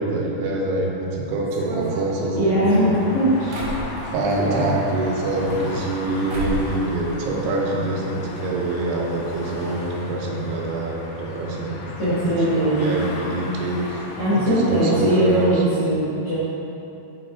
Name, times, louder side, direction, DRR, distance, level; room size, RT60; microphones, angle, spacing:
voice 1, 0.0-3.0 4.1-15.5, right 2 dB, 85° right, -2 dB, 3.2 m, -25 dB
sound 1, 1.5-4.4 5.2-6.0 6.3-6.8 7.1-7.9 8.1-8.2 8.4-8.5 9.2-9.3 9.6-9.8, right 1 dB, 70° right, 1.8 m, -33 dB
voice 2, 2.3-3.7 4.3-4.7 12.0-12.9 14.1-16.4, equal, 60° left, -14 dB, 1.5 m, -21 dB
sound 2, 2.8-15.5, left 2 dB, 85° left, 3.1 m, -35 dB
8.7 x 3.4 x 4.5 m, 2.8 s
omnidirectional pair, 5.2 m